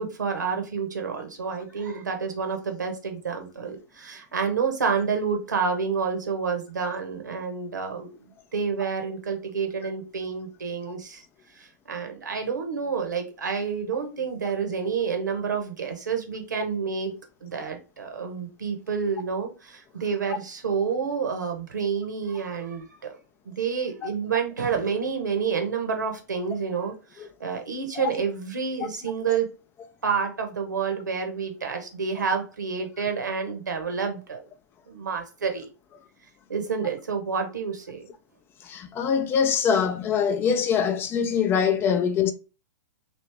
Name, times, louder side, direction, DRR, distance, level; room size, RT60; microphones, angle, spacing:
voice 1, 0.0-8.1 8.5-11.2 11.6-17.1 17.4-23.2 23.4-29.5 30.0-34.5 34.9-35.7 36.5-38.0, right 6 dB, 80° right, 1.0 m, -29 dB
voice 2, 38.6-42.3, left 7 dB, 25° left, 0.4 m, -23 dB
3.0 x 2.8 x 3.3 m
figure-of-eight pair, 110°, 10 cm